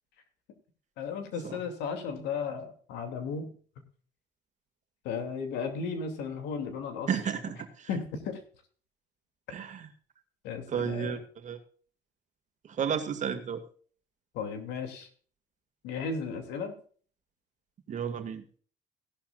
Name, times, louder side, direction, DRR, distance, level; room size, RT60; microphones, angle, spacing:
voice 1, 1.0-3.5 5.0-7.1 7.9-8.4 10.4-11.2 14.3-15.1 15.8-16.8, left 5 dB, 90° left, 7 dB, 2.7 m, -35 dB
voice 2, 7.1-7.9 9.5-9.9 10.7-11.6 12.6-13.6 17.9-18.4, right 7 dB, 45° right, 8 dB, 2.1 m, -33 dB
16.5 x 11.5 x 2.5 m, 0.44 s
cardioid pair, 110°, 17 cm